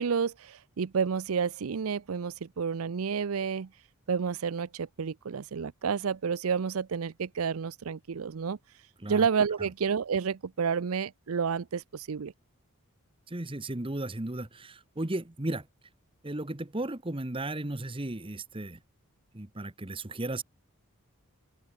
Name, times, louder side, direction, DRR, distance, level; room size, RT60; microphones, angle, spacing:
voice 1, 0.0-3.7 4.1-8.6 9.1-12.3, right 6 dB, 75° right, 0.5 m, -30 dB
voice 2, 13.3-15.7 16.2-18.8 19.3-20.4, right 2 dB, 25° right, 1.1 m, -35 dB
open air
head